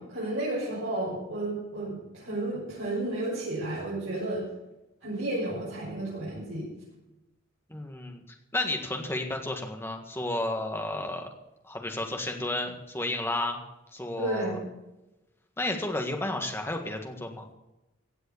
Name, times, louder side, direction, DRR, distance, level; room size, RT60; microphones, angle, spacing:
voice 1, 0.0-4.4 5.0-6.7 14.2-14.6, right 1 dB, 60° right, -9 dB, 6.2 m, -32 dB
voice 2, 7.7-8.2 8.5-11.3 11.6-13.6 13.9-14.6 15.6-17.5, left 1 dB, 10° left, 3 dB, 1.7 m, -32 dB
16.5 x 7.7 x 7.2 m, 0.99 s
head